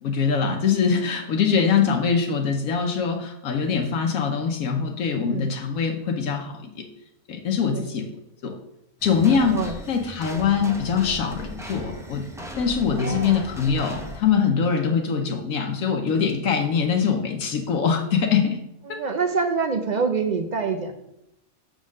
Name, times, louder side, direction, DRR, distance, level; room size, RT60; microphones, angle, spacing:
voice 1, 0.0-6.8 7.3-8.1 8.4-8.5 9.0-12.2 12.6-18.6 18.9-19.0, left 6 dB, 75° left, 3 dB, 1.1 m, -23 dB
voice 2, 5.1-5.5 7.6-7.8 9.4-9.8 12.9-13.4 18.9-21.0, right 5 dB, 75° right, 5 dB, 0.4 m, -27 dB
sound 1, 9.0-14.2, equal, 5° right, 0.5 m, -37 dB
6.1 x 3.8 x 6.2 m, 0.83 s
omnidirectional pair, 1.5 m